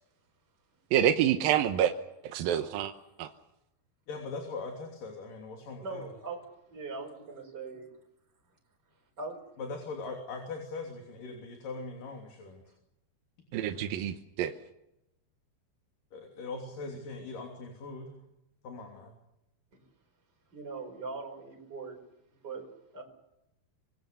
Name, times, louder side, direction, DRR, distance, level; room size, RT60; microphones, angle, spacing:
voice 1, 0.9-1.9 2.2-2.9 3.2-3.3 13.5-14.5, right 10 dB, 85° right, 7 dB, 2.8 m, -27 dB
voice 2, 4.1-6.1 9.6-12.6 16.1-18.2 18.6-19.1, left 3 dB, 65° left, 2 dB, 4.7 m, -40 dB
voice 3, 5.8-6.4 6.7-7.9 9.2-9.4 20.5-22.0 22.3-22.7 22.9-23.0, right 4 dB, 25° right, 0 dB, 5.5 m, -40 dB
26.5 x 22.0 x 6.9 m, 0.87 s
omnidirectional pair, 4.1 m